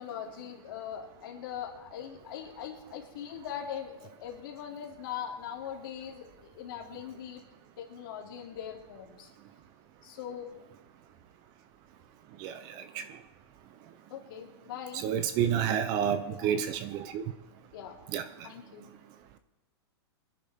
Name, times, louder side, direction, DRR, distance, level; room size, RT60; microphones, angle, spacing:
voice 1, 0.0-7.4 7.8-9.3 10.0-10.5 14.1-15.0 16.3-16.5 17.7-18.0 18.4-18.9, left 9 dB, 50° left, 0 dB, 3.0 m, -41 dB
voice 2, 12.4-13.0 14.9-17.2 18.1-18.2, right 8 dB, 25° right, 11 dB, 0.7 m, -30 dB
24.0 x 10.5 x 3.6 m, 1.1 s
hypercardioid pair, 160°, 14 cm